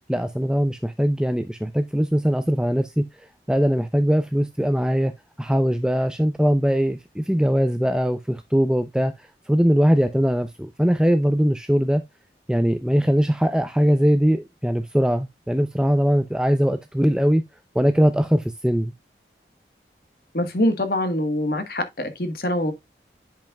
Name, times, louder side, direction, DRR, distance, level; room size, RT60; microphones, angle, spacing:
voice 1, 0.1-3.1 3.5-5.1 5.4-9.1 9.5-12.0 12.5-17.4 17.8-18.9, equal, 5° right, 0.4 m, -21 dB
voice 2, 20.3-22.7, left 1 dB, 55° left, 1.4 m, -24 dB
10.5 x 5.4 x 2.2 m
head